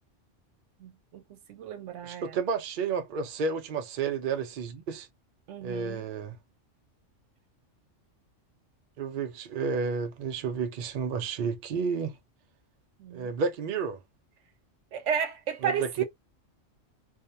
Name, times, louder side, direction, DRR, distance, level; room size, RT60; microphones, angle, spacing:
voice 1, 0.8-2.4 5.5-6.1 13.0-13.3 14.9-16.0, right 7 dB, 75° right, 1.0 m, -33 dB
voice 2, 2.0-5.1 5.6-6.4 9.0-12.2 13.1-14.0 15.6-16.0, right 5 dB, 60° right, 0.5 m, -31 dB
2.6 x 2.1 x 2.6 m
omnidirectional pair, 1.3 m